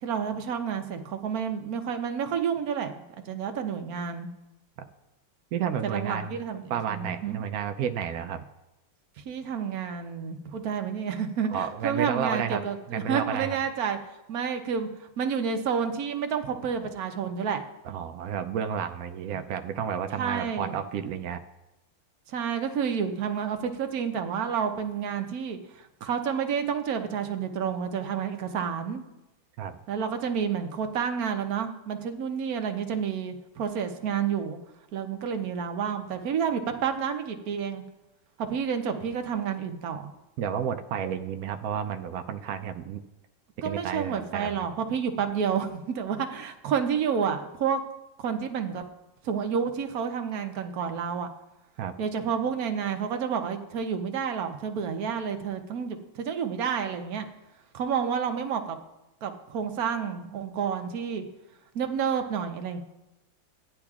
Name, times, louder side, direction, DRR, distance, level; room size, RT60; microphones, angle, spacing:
voice 1, 0.0-2.9 3.3-4.3 5.8-7.4 9.2-14.0 14.3-17.6 19.3-19.4 20.2-20.8 22.3-29.0 29.9-34.6 34.9-37.8 38.4-40.1 43.6-47.8 48.2-48.8 49.2-51.3 52.0-57.3 57.7-58.8 59.2-61.2 61.7-62.8, right 7 dB, 60° right, 6 dB, 1.1 m, -30 dB
voice 2, 5.5-6.4 6.7-8.4 11.5-12.6 12.9-13.6 17.8-21.4 29.6-29.8 40.4-43.0 43.6-44.7 51.8-51.9, right 8 dB, 80° right, 7 dB, 0.8 m, -31 dB
15.5 x 10.0 x 2.4 m, 0.96 s
omnidirectional pair, 2.0 m